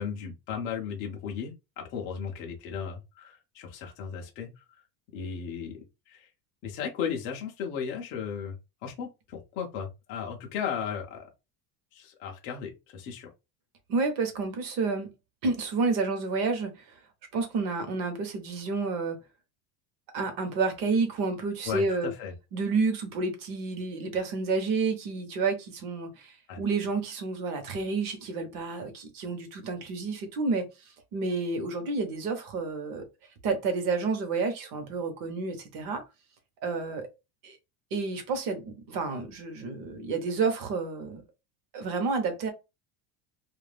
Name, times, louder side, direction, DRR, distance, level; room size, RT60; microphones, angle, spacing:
voice 1, 0.0-4.6 5.1-5.8 6.1-6.3 6.6-8.5 8.8-11.3 11.9-13.3 21.6-22.3 26.5-26.6, left 7 dB, 30° left, 0.3 m, -35 dB
voice 2, 13.9-15.1 15.4-16.8 17.3-19.2 20.1-22.1 22.5-30.7 31.1-33.0 33.4-36.0 36.6-37.1 37.4-37.6 37.9-41.2 41.7-42.5, right 4 dB, 45° right, 0.8 m, -30 dB
2.4 x 2.1 x 3.2 m
cardioid pair, 170°, 48 cm